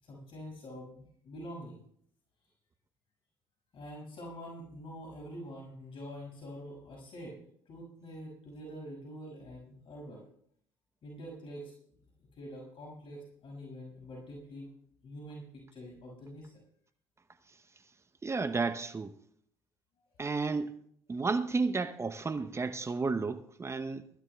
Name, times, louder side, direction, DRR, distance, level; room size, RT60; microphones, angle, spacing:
voice 1, 0.0-1.8 3.7-7.4 7.7-10.3 11.0-11.7 12.4-14.7 15.0-15.4 15.7-16.6, equal, 50° left, 5.7 m, -45 dB
voice 2, 18.2-19.2 20.2-20.7 21.1-24.1, right 4 dB, 25° right, 0.7 m, -32 dB
22.5 x 15.0 x 2.3 m
hypercardioid pair, 55°, 11 cm